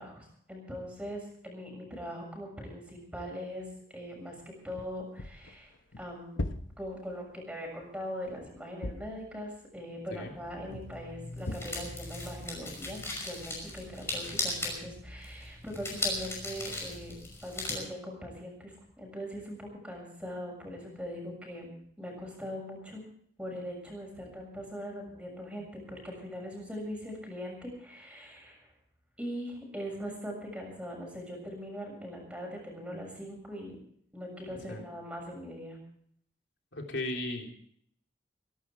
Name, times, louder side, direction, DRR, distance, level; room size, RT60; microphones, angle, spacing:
voice 1, 0.0-3.7 3.9-5.7 6.0-6.5 6.8-17.2 17.4-23.0 23.4-28.7 29.2-33.7 34.1-35.8, equal, 5° right, 0 dB, 7.0 m, -41 dB
sound 1, 4.5-7.4 7.9-9.6 10.7-11.1 11.5-12.1, left 1 dB, 90° left, 1.1 m, -40 dB
sound 2, 10.2-17.7, left 2 dB, 15° left, 5.7 m, -38 dB
voice 2, 36.7-37.5, left 1 dB, 70° left, 2 dB, 3.5 m, -36 dB
24.5 x 12.0 x 4.6 m, 0.66 s
head